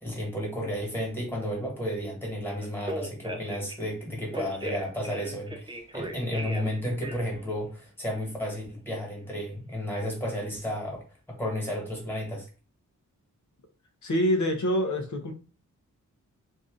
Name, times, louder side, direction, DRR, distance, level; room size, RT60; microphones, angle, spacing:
voice 1, 0.0-11.0 11.3-12.5, equal, 5° left, -1 dB, 1.4 m, -32 dB
Telephone, 2.6-3.7 4.3-6.7 7.0-7.4, right 1 dB, 15° right, 0.5 m, -36 dB
voice 2, 14.0-15.3, equal, 70° left, 5 dB, 0.8 m, -25 dB
2.6 x 2.6 x 3.6 m, 0.36 s
wide cardioid pair, 120°, 31 cm